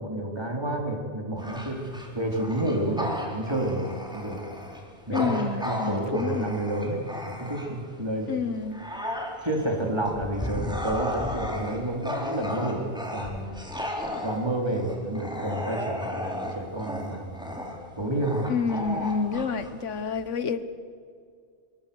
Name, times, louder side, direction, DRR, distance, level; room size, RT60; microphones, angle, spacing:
voice 1, 0.0-1.8 2.1-4.4 5.1-8.3 9.4-13.5 14.2-17.6 18.0-18.5, right 1 dB, 20° right, 1 dB, 3.9 m, -30 dB
Bark / Growling, 1.4-7.9 8.4-20.3, left 1 dB, 5° right, 4.1 m, -34 dB
voice 2, 5.1-6.5 8.3-8.8 18.5-20.8, left 5 dB, 90° left, 12 dB, 1.5 m, -29 dB
27.0 x 23.5 x 7.1 m, 2.2 s
omnidirectional pair, 1.2 m